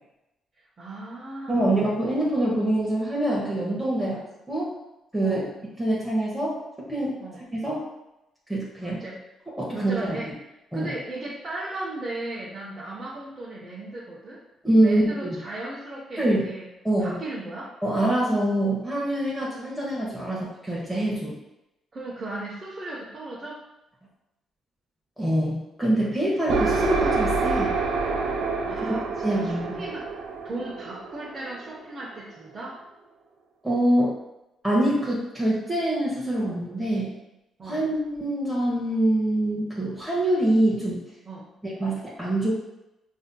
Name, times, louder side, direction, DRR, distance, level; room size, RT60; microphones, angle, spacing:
voice 1, 0.8-1.7 4.0-4.2 5.2-5.5 7.2-7.4 8.8-9.2 9.7-10.3 10.7-14.4 14.8-16.7 17.0-17.8 21.9-23.6 28.6-30.1 30.4-32.8 37.6-37.9 41.3-41.5, right 2 dB, 35° right, -6 dB, 0.8 m, -36 dB
voice 2, 1.5-4.2 4.5-4.7 5.1-5.4 5.8-6.5 6.9-7.2 7.5-7.8 8.5-9.0 9.6-10.2 10.7-10.9 14.6-15.4 16.2-16.4 16.8-17.2 17.8-21.3 25.2-27.7 29.2-29.9 33.6-34.1 34.6-37.1 37.6-41.0 41.6-42.5, right 1 dB, 5° right, -7 dB, 0.9 m, -24 dB
sound 1, 26.5-32.1, right 4 dB, 85° right, 0.5 m, -27 dB
4.8 x 2.8 x 2.2 m, 0.93 s
cardioid pair, 90°, 0 cm